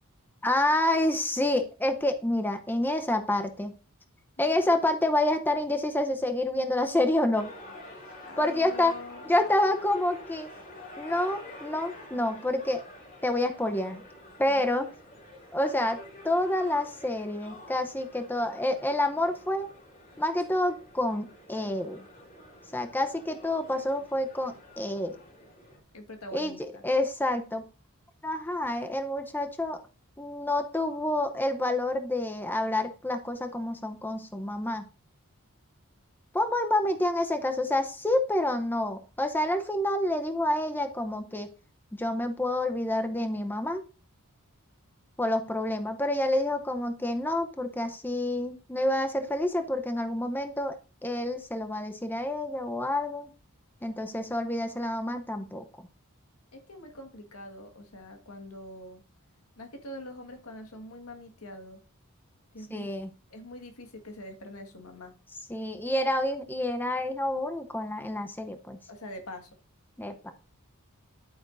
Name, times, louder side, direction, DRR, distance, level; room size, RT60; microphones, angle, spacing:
voice 1, 0.4-3.7 4.4-7.5 8.4-8.9 9.3-10.5 11.0-12.8 13.2-14.0 14.4-14.9 15.5-16.0 16.2-19.7 20.2-22.0 22.7-25.2 26.3-26.5 26.8-27.7 28.2-29.8 30.2-34.9 36.3-41.5 41.9-43.8 45.2-50.8 51.0-53.3 53.8-55.6 62.7-63.1 65.5-68.8 70.0-70.3, left 1 dB, 10° left, 7 dB, 0.7 m, -28 dB
voice 2, 4.4-4.7 8.2-9.5 14.5-14.7 25.9-26.8 56.5-59.0 59.6-61.8 62.5-62.9 63.3-65.1 68.9-69.5, left 1 dB, 80° left, 5 dB, 1.7 m, -44 dB
sound 1, 7.3-25.8, left 1 dB, 40° left, 3.9 m, -48 dB
11.0 x 8.7 x 2.6 m, 0.35 s
head